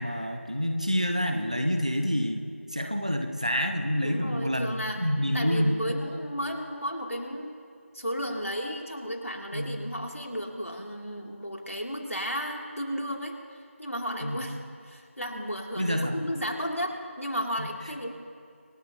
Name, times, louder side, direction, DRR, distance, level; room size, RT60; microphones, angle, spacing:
voice 1, 0.0-2.4 2.7-5.7 9.5-9.8 14.2-14.4 15.8-16.2 17.6-17.7, equal, 30° right, 5 dB, 0.9 m, -27 dB
voice 2, 4.0-5.1 5.3-7.6 7.9-14.6 14.8-18.1, equal, 80° left, 0 dB, 2.9 m, -34 dB
26.5 x 14.0 x 2.9 m, 2.3 s
figure-of-eight pair, 180°, 7 cm